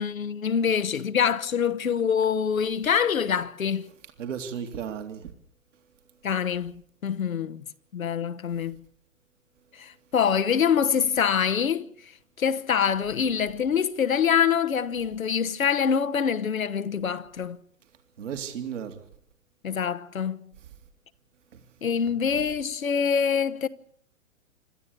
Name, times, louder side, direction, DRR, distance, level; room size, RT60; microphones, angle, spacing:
voice 1, 0.0-3.9 6.2-7.6 7.9-8.8 9.7-11.9 12.4-17.6 19.6-20.4 21.8-23.7, left 7 dB, 80° left, 1.1 m, -25 dB
voice 2, 4.2-5.3 18.2-19.0 21.5-21.6 22.1-22.2, right 8 dB, 65° right, 2.6 m, -34 dB
26.0 x 13.0 x 8.5 m
figure-of-eight pair, 115°, 40 cm